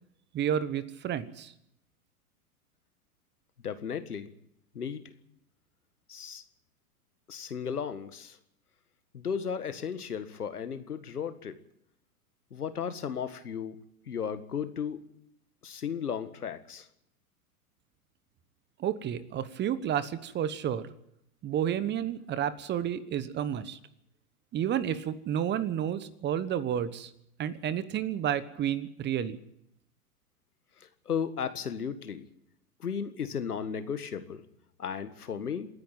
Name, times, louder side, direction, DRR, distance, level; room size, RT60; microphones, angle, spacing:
voice 1, 0.3-1.5 18.8-20.9 21.4-23.8 24.5-27.1 27.4-29.4, right 9 dB, 25° right, 16 dB, 1.2 m, -31 dB
voice 2, 3.6-4.3 4.8-5.0 6.1-6.4 7.3-8.4 9.1-11.6 12.5-13.8 14.1-15.0 15.6-16.9 30.8-32.2 32.8-34.4 34.8-35.7, left 7 dB, 80° left, 11 dB, 1.8 m, -35 dB
27.5 x 10.5 x 9.1 m, 0.78 s
figure-of-eight pair, 100°, 45 cm